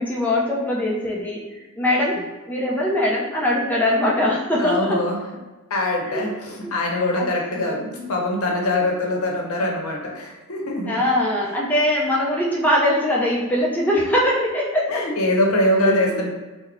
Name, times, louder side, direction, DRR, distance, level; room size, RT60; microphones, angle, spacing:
voice 1, 0.0-2.2 2.5-5.0 6.1-6.3 7.2-7.3 7.5-7.8 10.9-15.1 15.8-16.2, left 1 dB, 10° left, -4 dB, 0.4 m, -22 dB
voice 2, 4.6-5.2 5.7-11.0 14.9-16.3, left 1 dB, 80° left, 0 dB, 0.7 m, -23 dB
3.5 x 2.1 x 3.4 m, 1.2 s
head